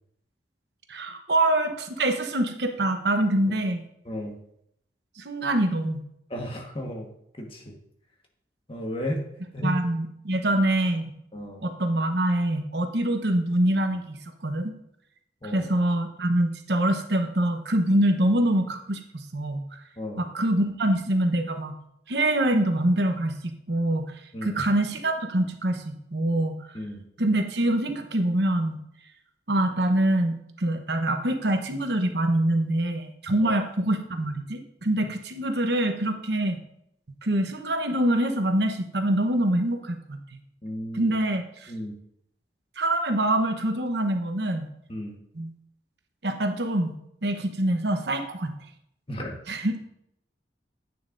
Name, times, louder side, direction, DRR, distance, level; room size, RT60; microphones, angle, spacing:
voice 1, 0.9-3.8 5.2-6.0 9.6-11.1 11.6-14.2 14.4-14.7 15.5-19.6 20.2-21.7 22.1-24.1 24.4-26.5 27.2-28.8 29.5-36.6 37.2-40.2 40.9-41.7 42.8-44.7 45.4-45.5 46.2-47.0 47.2-48.5 49.5-49.7, right 1 dB, 65° right, 5 dB, 1.0 m, -25 dB
voice 2, 4.0-4.4 6.3-7.1 7.4-7.7 8.7-9.2 9.5-9.8 11.3-11.6 15.4-15.7 20.0-20.2 24.3-24.6 26.7-27.0 33.4-33.6 35.0-35.1 40.6-41.2 41.7-41.9 44.9-45.2 49.1-49.4, equal, 30° left, 1 dB, 1.5 m, -33 dB
10.5 x 8.8 x 2.6 m, 0.75 s
head